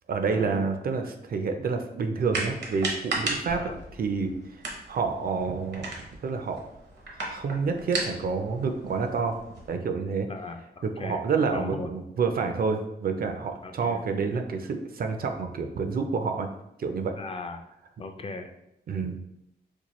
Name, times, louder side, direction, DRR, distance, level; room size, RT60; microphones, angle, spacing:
voice 1, 0.1-3.6 4.0-4.3 4.9-6.6 7.3-9.4 9.7-10.3 10.8-16.5 16.8-17.1 18.9-19.2, right 5 dB, 60° right, 6 dB, 0.4 m, -28 dB
sound 1, 2.3-9.7, right 3 dB, 80° right, 0.9 m, -36 dB
sound 2, 3.5-5.9, left 2 dB, 75° left, 1.0 m, -48 dB
voice 2, 10.3-11.2 11.5-11.9 13.6-14.1 17.2-17.6 18.0-18.5, left 3 dB, 35° left, 6 dB, 0.4 m, -37 dB
4.4 x 2.2 x 3.0 m, 0.83 s
wide cardioid pair, 100°, 17 cm